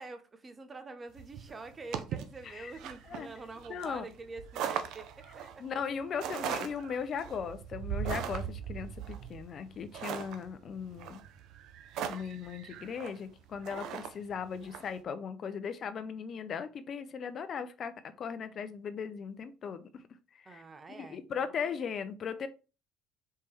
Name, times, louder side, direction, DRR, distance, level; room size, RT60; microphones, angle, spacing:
voice 1, 0.0-5.8 20.4-21.8, right 3 dB, 30° right, 0.8 m, -47 dB
sound 1, 1.2-14.9, right 9 dB, 70° right, 0.6 m, -39 dB
voice 2, 3.7-4.0 5.6-11.2 12.1-20.0 20.3-20.6 21.0-22.5, left 6 dB, 50° left, 0.5 m, -38 dB
4.4 x 3.3 x 3.2 m
supercardioid pair, 80°, 0 cm